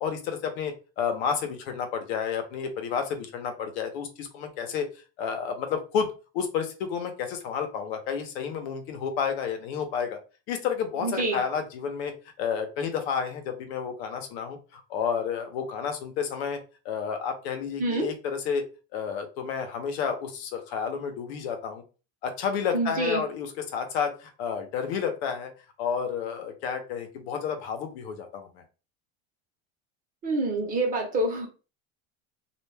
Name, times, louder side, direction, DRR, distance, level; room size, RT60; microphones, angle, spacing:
voice 1, 0.0-4.9 5.2-10.2 10.5-16.6 16.8-18.6 18.9-21.8 22.2-25.5 25.8-28.6, left 7 dB, 80° left, 6 dB, 0.8 m, -31 dB
voice 2, 11.0-11.4 17.8-18.1 22.7-23.2 30.2-31.5, right 2 dB, 25° right, 1 dB, 0.8 m, -26 dB
2.3 x 2.2 x 3.3 m, 0.34 s
cardioid pair, 155°, 31 cm